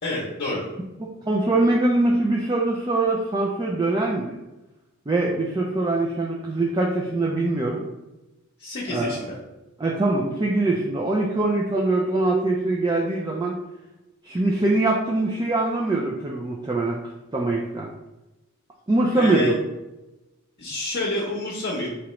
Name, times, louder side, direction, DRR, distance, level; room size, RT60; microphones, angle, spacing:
voice 1, 0.0-0.6 8.6-9.4 19.1-19.6 20.6-21.9, left 2 dB, 45° left, -5 dB, 0.7 m, -28 dB
voice 2, 1.0-4.3 5.1-7.8 8.9-9.2 9.8-13.6 14.2-17.0 17.3-17.9 18.9-19.5, right 2 dB, 20° right, -2 dB, 0.4 m, -23 dB
4.7 x 2.9 x 3.1 m, 1.0 s
head